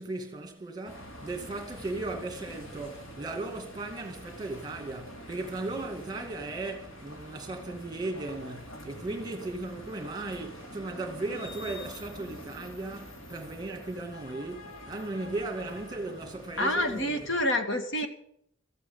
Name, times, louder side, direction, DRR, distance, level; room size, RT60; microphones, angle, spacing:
voice 1, 0.0-17.3, right 2 dB, 20° right, 2.1 m, -37 dB
sound 1, 0.9-17.5, equal, 85° left, 2.9 m, -46 dB
voice 2, 16.6-18.1, left 1 dB, 65° left, 2.0 m, -27 dB
14.5 x 8.1 x 9.4 m
head